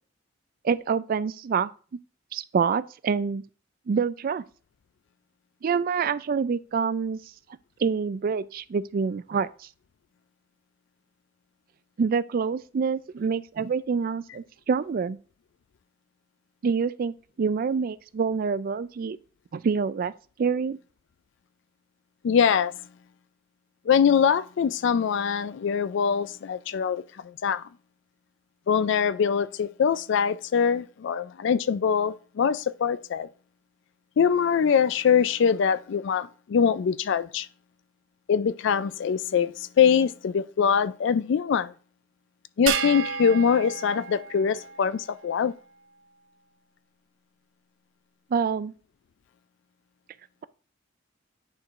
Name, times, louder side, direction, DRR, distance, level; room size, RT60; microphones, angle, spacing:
voice 1, 0.6-1.7 2.3-3.4 3.9-4.4 5.6-7.2 7.8-9.5 12.0-15.2 16.6-19.2 19.5-20.1 20.4-20.8 48.3-48.7, right 5 dB, 45° right, 0.3 m, -26 dB
voice 2, 22.2-22.7 23.9-27.0 27.4-27.6 28.7-33.3 34.2-37.5 38.3-41.7 42.6-45.5, left 7 dB, 65° left, 0.4 m, -23 dB
sound 1, 42.7-45.2, right 7 dB, 75° right, 0.7 m, -32 dB
9.8 x 4.5 x 2.5 m
head